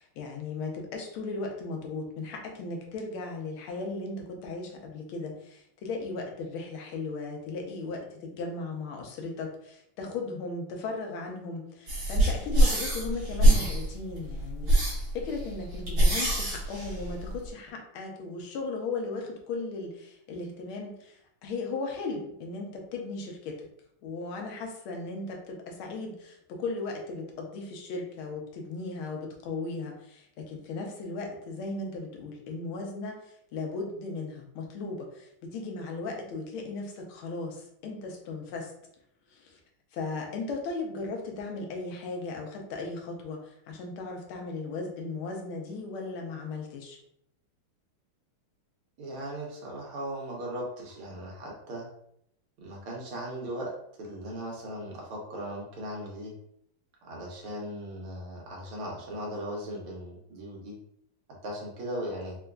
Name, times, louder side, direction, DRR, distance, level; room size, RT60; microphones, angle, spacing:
voice 1, 0.0-23.7 24.0-38.7 39.3-39.6 39.9-47.0, left 3 dB, 75° left, 2 dB, 1.5 m, -37 dB
sound 1, 11.9-17.5, right 1 dB, 55° right, 1.9 m, -24 dB
voice 2, 49.0-51.9 52.6-53.7 54.0-56.3 57.0-60.8 61.4-62.4, equal, 80° right, -3 dB, 1.9 m, -38 dB
4.4 x 2.4 x 2.2 m, 0.71 s
omnidirectional pair, 2.4 m